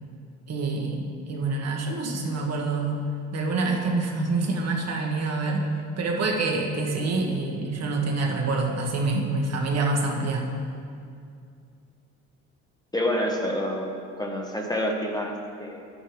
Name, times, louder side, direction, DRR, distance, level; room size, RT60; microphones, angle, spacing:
voice 1, 0.5-3.0 3.3-5.6 6.0-10.5, right 3 dB, 55° right, 0 dB, 1.7 m, -26 dB
voice 2, 12.9-15.9, equal, 10° left, 1 dB, 1.3 m, -28 dB
11.0 x 8.9 x 3.5 m, 2.4 s
supercardioid pair, 70°, 31 cm